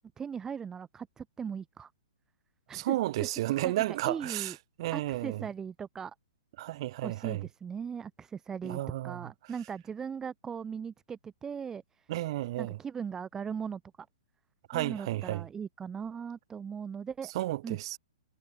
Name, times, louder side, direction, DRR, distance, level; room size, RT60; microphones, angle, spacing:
voice 1, 0.2-1.9 2.7-4.6 4.9-6.1 7.0-12.1 12.6-13.8 14.7-17.3 17.6-17.8, right 7 dB, 15° right, 4.2 m, -39 dB
voice 2, 2.7-5.4 6.6-7.5 8.6-9.3 12.1-12.8 14.7-15.4 17.3-18.0, right 16 dB, 45° right, 6.2 m, -32 dB
figure-of-eight pair, 115°, 4 cm